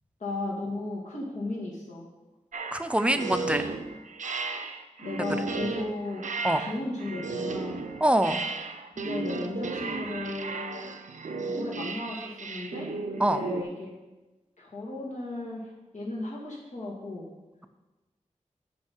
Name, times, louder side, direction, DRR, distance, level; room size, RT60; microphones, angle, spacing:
voice 1, 0.2-2.1 5.0-6.3 6.6-7.8 8.9-10.9 11.3-13.9 14.6-15.7 15.9-17.3, left 2 dB, 75° left, -4 dB, 2.4 m, -35 dB
sound 1, 2.5-13.6, right 4 dB, 80° right, 0.6 m, -34 dB
voice 2, 2.7-3.7 6.4-6.6 8.0-8.4 13.2-13.5, right 1 dB, 10° right, 9 dB, 0.5 m, -24 dB
9.5 x 5.8 x 4.5 m, 1.1 s
wide cardioid pair, 100°, 13 cm